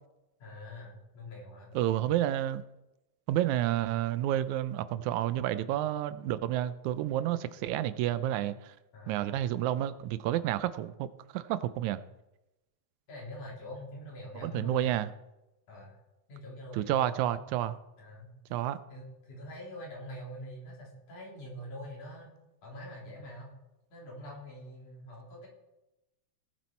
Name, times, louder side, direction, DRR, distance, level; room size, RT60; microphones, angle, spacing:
voice 1, 0.4-1.7 8.9-9.4 13.1-14.9 15.7-15.9 16.3-17.5 18.0-18.6 18.9-22.3 22.6-23.5 23.9-25.5, equal, 85° left, -3 dB, 4.8 m, -44 dB
voice 2, 1.8-2.6 3.3-8.7 9.1-11.1 11.3-12.0 14.4-15.1 16.8-17.8 18.5-18.8, right 12 dB, 80° right, 14 dB, 1.9 m, -30 dB
18.0 x 7.5 x 4.4 m, 0.96 s
omnidirectional pair, 3.4 m